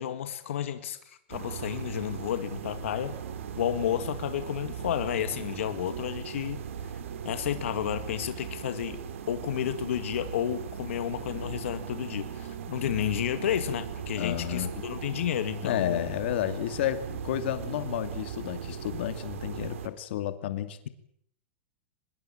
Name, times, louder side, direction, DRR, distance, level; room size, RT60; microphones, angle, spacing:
voice 1, 0.0-3.2 3.6-6.9 7.2-9.0 9.3-16.1, left 10 dB, 80° left, 10 dB, 2.2 m, -31 dB
sound 1, 1.3-19.9, right 7 dB, 85° right, 3.9 m, -38 dB
voice 2, 14.1-14.7 15.6-20.9, left 12 dB, 55° left, 10 dB, 2.4 m, -31 dB
24.5 x 21.5 x 8.9 m, 0.68 s
supercardioid pair, 175°, 7 cm